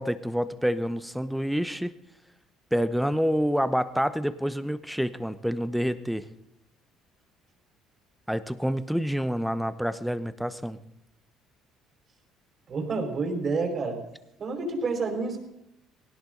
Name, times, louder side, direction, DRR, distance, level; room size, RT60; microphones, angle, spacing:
voice 1, 0.0-1.9 2.7-6.3 8.3-10.8, equal, ahead, 12 dB, 0.9 m, -27 dB
voice 2, 12.7-14.0 14.4-15.4, right 3 dB, 40° right, 2 dB, 4.8 m, -29 dB
19.5 x 18.0 x 3.9 m, 0.83 s
cardioid pair, 100°, 0 cm